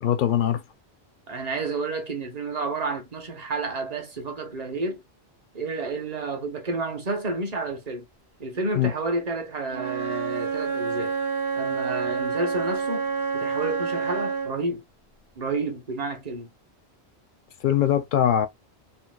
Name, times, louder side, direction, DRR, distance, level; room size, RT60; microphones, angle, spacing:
voice 1, 0.0-0.6 8.8-8.9 17.6-18.5, left 10 dB, 60° left, 0.6 m, -21 dB
voice 2, 1.3-5.0 5.5-8.0 8.4-11.2 11.6-14.8 15.4-16.5, right 3 dB, 40° right, 0.9 m, -30 dB
Wind instrument woodwind instrument, 9.7-14.7, right 5 dB, 85° right, 1.2 m, -28 dB
4.3 x 2.0 x 2.2 m
omnidirectional pair, 1.1 m